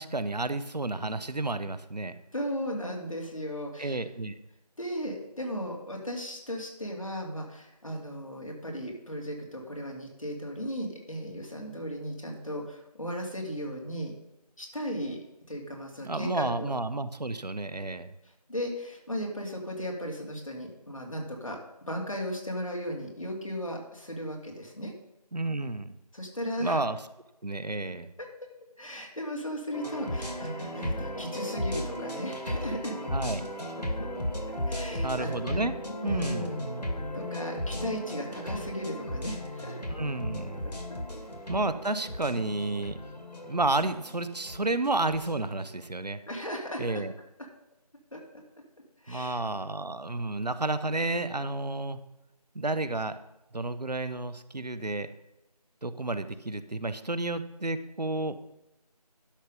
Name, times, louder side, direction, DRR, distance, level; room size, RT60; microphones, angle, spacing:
voice 1, 0.0-2.1 3.8-4.3 16.0-18.1 25.3-25.9 26.6-27.0 27.4-28.1 33.1-33.4 35.0-35.7 36.0-36.6 39.9-40.7 41.5-43.0 43.4-46.2 46.8-47.1 49.1-52.0 52.5-53.2 53.5-55.1 55.8-58.4, right 2 dB, 80° right, 13 dB, 1.0 m, -31 dB
voice 2, 2.3-4.0 4.8-14.1 14.6-15.2 15.5-16.7 18.2-21.6 21.9-24.9 26.1-26.8 28.2-28.3 28.8-33.0 34.7-35.6 36.0-36.7 37.1-39.8 40.6-41.0 46.3-47.0 48.1-48.2 49.0-49.4, equal, 55° left, 0 dB, 2.7 m, -36 dB
sound 1, 29.7-45.9, left 1 dB, 90° left, 2.2 m, -35 dB
12.0 x 6.0 x 5.2 m, 0.91 s
figure-of-eight pair, 175°, 20 cm